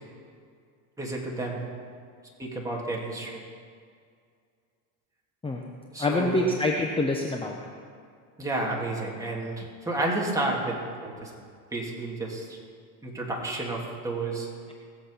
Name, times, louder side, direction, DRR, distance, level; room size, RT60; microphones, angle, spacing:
voice 1, 1.0-1.6 2.4-3.4 5.9-6.5 8.4-11.3 11.7-12.6 13.0-14.5, right 2 dB, 5° right, -3 dB, 3.0 m, -31 dB
voice 2, 6.0-7.6, left 2 dB, 10° left, 1 dB, 1.0 m, -26 dB
19.5 x 7.7 x 5.7 m, 2.2 s
supercardioid pair, 115°, 46 cm